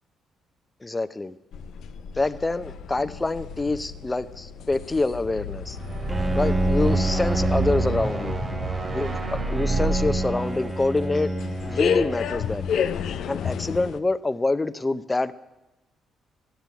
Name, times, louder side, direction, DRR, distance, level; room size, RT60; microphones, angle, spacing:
voice 1, 0.8-1.4 2.1-5.8 6.3-8.4 8.9-11.3 11.7-12.9 13.3-15.3, left 2 dB, 20° left, 13 dB, 0.7 m, -26 dB
sound 1, 1.5-14.0, left 7 dB, 75° left, 0.6 m, -33 dB
sound 2, 5.6-12.0, right 3 dB, 40° right, 1.9 m, -28 dB
Bowed string instrument, 6.1-13.2, right 1 dB, 15° right, 0.9 m, -29 dB
13.0 x 9.1 x 8.3 m, 0.99 s
cardioid pair, 90°, 0 cm